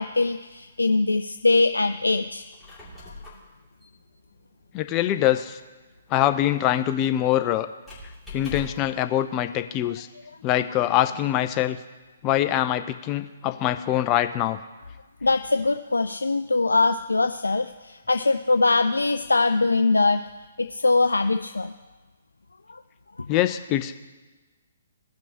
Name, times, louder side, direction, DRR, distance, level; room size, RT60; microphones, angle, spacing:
voice 1, 0.0-2.4 3.0-3.1 15.2-20.2 20.6-21.7 22.7-22.8 23.2-23.3, left 3 dB, 75° left, 9 dB, 0.3 m, -22 dB
Squeak, 2.4-9.0, left 2 dB, 5° left, 2.6 m, -44 dB
voice 2, 4.7-5.6 6.1-7.7 8.3-10.1 10.4-11.8 12.2-14.6 23.3-24.0, left 12 dB, 25° left, 9 dB, 0.5 m, -24 dB
16.5 x 6.0 x 2.9 m, 1.3 s
figure-of-eight pair, 125°, 0 cm